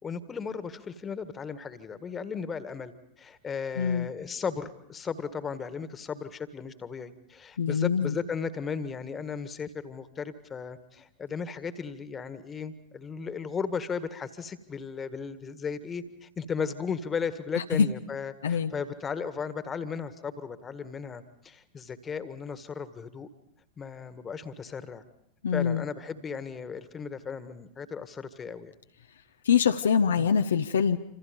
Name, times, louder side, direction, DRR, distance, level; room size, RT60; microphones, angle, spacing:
voice 1, 0.0-23.3 23.8-25.0 25.5-28.7, left 6 dB, 20° left, 13 dB, 1.7 m, -36 dB
voice 2, 3.8-4.1 7.6-8.1 17.5-17.9 18.4-18.7 25.4-25.8 29.5-31.0, left 7 dB, 65° left, 7 dB, 0.9 m, -24 dB
27.5 x 27.5 x 5.3 m, 0.74 s
figure-of-eight pair, 90°, 0 cm